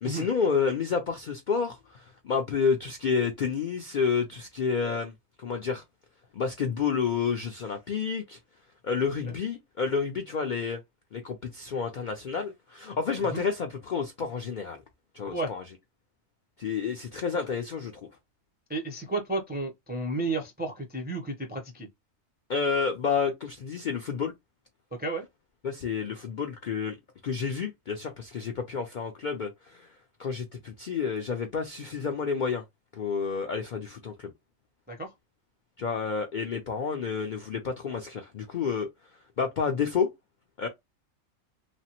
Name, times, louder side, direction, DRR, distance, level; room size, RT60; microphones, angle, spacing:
voice 1, 0.0-5.1 5.4-5.8 6.3-8.4 8.8-10.8 11.1-14.8 15.1-15.6 16.6-17.9 22.5-24.3 25.6-27.0 27.2-29.9 30.2-32.6 32.9-34.3 35.8-38.9 39.4-40.1 40.6-40.7, left 5 dB, 65° left, 0.5 m, -30 dB
voice 2, 18.7-21.9 24.9-25.3 34.9-35.1, right 2 dB, 15° right, 0.3 m, -32 dB
3.3 x 2.0 x 2.8 m
omnidirectional pair, 1.4 m